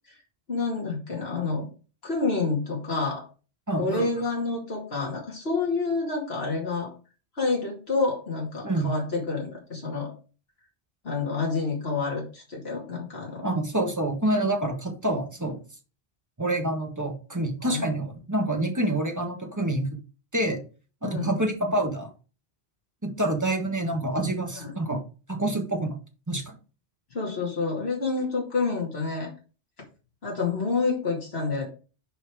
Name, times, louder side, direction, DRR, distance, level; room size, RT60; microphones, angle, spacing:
voice 1, 0.5-1.7 2.0-3.3 3.8-6.9 7.4-10.1 11.0-13.5 17.6-17.8 21.0-21.3 24.5-24.7 27.1-29.3 30.2-31.7, left 3 dB, 70° left, -3 dB, 2.6 m, -28 dB
voice 2, 3.7-4.0 8.6-8.9 13.4-15.6 16.4-19.9 20.3-20.6 21.0-22.1 23.0-25.0 25.3-26.0 26.3-26.5, right 1 dB, 15° right, 3 dB, 1.5 m, -27 dB
5.7 x 5.3 x 4.9 m, 0.35 s
omnidirectional pair, 1.1 m